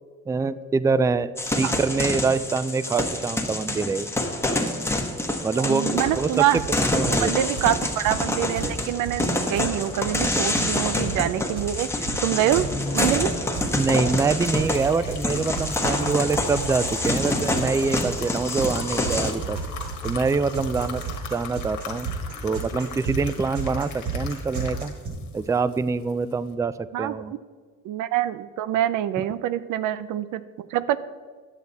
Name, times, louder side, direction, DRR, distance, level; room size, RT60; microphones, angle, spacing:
voice 1, 0.3-4.1 5.4-5.9 6.1-6.3 6.8-7.3 13.8-19.6 20.0-21.0 21.3-22.1 22.4-24.9 25.3-27.3, right 4 dB, 10° right, 15 dB, 0.3 m, -25 dB
sound 1, 1.4-19.3, left 1 dB, 10° left, 1.3 m, -27 dB
voice 2, 5.6-6.6 7.0-12.7 12.9-13.3 26.9-27.2 27.8-31.0, right 12 dB, 90° right, 15 dB, 0.5 m, -25 dB
sound 2, 6.1-25.1, right 4 dB, 70° right, 3.4 m, -34 dB
sound 3, 13.5-26.5, left 6 dB, 75° left, 1.4 m, -39 dB
10.5 x 8.1 x 4.1 m, 1.5 s
cardioid pair, 90°, 30 cm